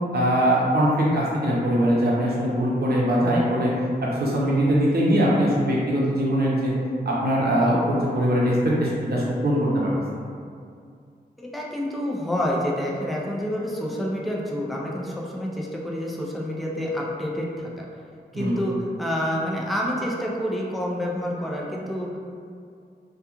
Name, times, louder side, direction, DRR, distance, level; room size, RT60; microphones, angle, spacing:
voice 1, 0.1-3.7 4.0-6.7 7.1-10.2 18.3-18.6, equal, 65° right, -5 dB, 0.6 m, -22 dB
voice 2, 11.4-17.9 18.3-22.2, equal, ahead, -3 dB, 0.3 m, -28 dB
2.3 x 2.2 x 2.9 m, 2.3 s
wide cardioid pair, 95°, 18 cm